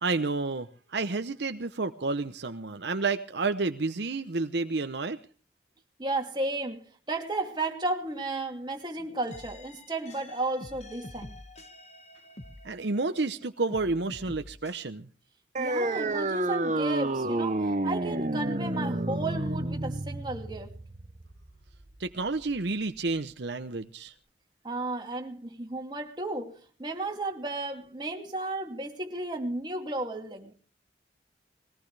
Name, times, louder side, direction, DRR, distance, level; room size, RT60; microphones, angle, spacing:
voice 1, 0.0-5.2 12.6-15.1 22.0-24.1, right 3 dB, 65° right, 0.8 m, -30 dB
voice 2, 6.0-11.4 15.6-20.7 24.6-30.5, right 2 dB, 25° right, 2.5 m, -33 dB
sound 1, 9.3-13.4 13.7-14.8, left 1 dB, 35° left, 1.6 m, -47 dB
sound 2, 15.5-22.6, right 2 dB, 40° right, 0.9 m, -30 dB
21.5 x 18.0 x 3.4 m
head